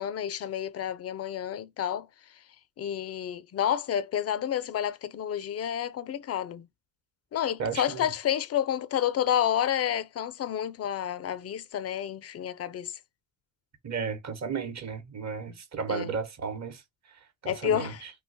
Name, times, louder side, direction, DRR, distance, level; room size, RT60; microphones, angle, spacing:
voice 1, 0.0-2.1 2.8-6.7 7.3-12.9 15.9-16.1 17.5-18.0, left 10 dB, 35° left, 0.4 m, -30 dB
voice 2, 7.6-8.1 13.8-16.8 17.1-18.1, right 6 dB, 40° right, 1.1 m, -34 dB
2.8 x 2.3 x 3.9 m
supercardioid pair, 70°, 44 cm